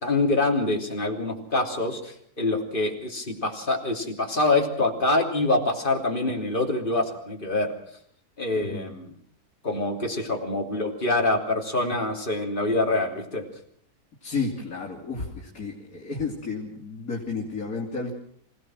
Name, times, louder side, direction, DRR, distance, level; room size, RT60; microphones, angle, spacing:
voice 1, 0.0-7.7 8.4-9.1 9.6-13.4, left 2 dB, 30° left, 2 dB, 3.3 m, -25 dB
voice 2, 8.6-8.9 14.2-18.1, left 4 dB, 65° left, -2 dB, 3.5 m, -32 dB
26.5 x 17.0 x 6.2 m, 0.64 s
omnidirectional pair, 1.6 m